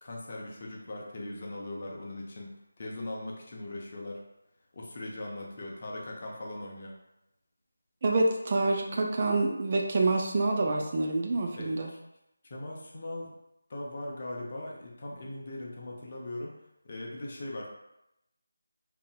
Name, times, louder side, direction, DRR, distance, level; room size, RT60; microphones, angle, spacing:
voice 1, 0.0-4.2 4.7-7.0 11.5-12.0 12.4-13.3 13.7-16.6 16.8-17.7, left 1 dB, 40° left, -2 dB, 0.5 m, -40 dB
voice 2, 8.0-11.9, right 2 dB, 35° right, 0 dB, 0.3 m, -27 dB
2.7 x 2.5 x 2.2 m, 0.86 s
figure-of-eight pair, 165°, 0 cm